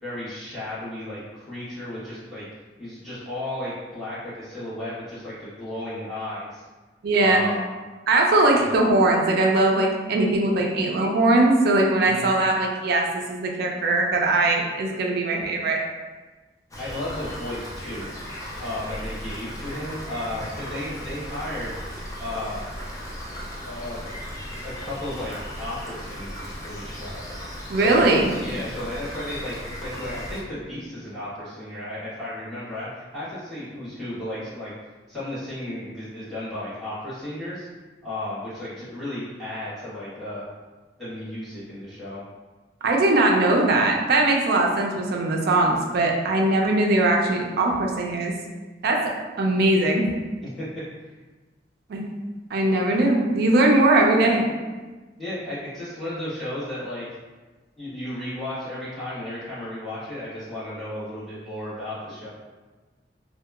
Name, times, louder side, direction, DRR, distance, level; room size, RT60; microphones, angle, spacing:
voice 1, 0.0-2.4 2.8-6.6 7.2-7.7 8.5-8.7 12.0-12.3 16.8-18.1 18.6-21.7 22.2-22.6 23.6-24.2 24.6-27.2 27.7-34.7 35.1-37.7 38.0-40.5 41.0-42.2 50.6-50.7 55.2-57.0 57.8-62.3, left 1 dB, ahead, -13 dB, 1.2 m, -34 dB
voice 2, 7.0-7.4 8.1-15.8 27.7-28.3 42.8-48.3 48.8-49.0 49.4-50.1 51.9-52.0 52.5-54.4, right 2 dB, 60° right, 0 dB, 0.4 m, -20 dB
Rain, 16.7-30.4, equal, 20° left, 0.4 m, -36 dB
2.7 x 2.1 x 2.3 m, 1.3 s
head